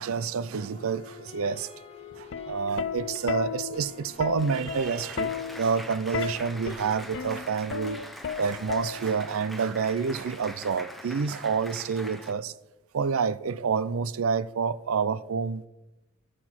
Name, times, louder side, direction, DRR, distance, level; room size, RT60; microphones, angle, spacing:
voice 1, 0.0-1.7 2.2-8.0 8.4-12.5 12.9-15.7, right 5 dB, 80° right, 0.5 m, -28 dB
sound 1, 0.5-5.6, left 3 dB, 30° left, 1.0 m, -47 dB
Plucked string instrument, 2.1-9.4 10.4-10.7, left 7 dB, 65° left, 0.5 m, -34 dB
Applause, 3.9-12.3, equal, ahead, 0.9 m, -43 dB
13.0 x 6.1 x 6.0 m
head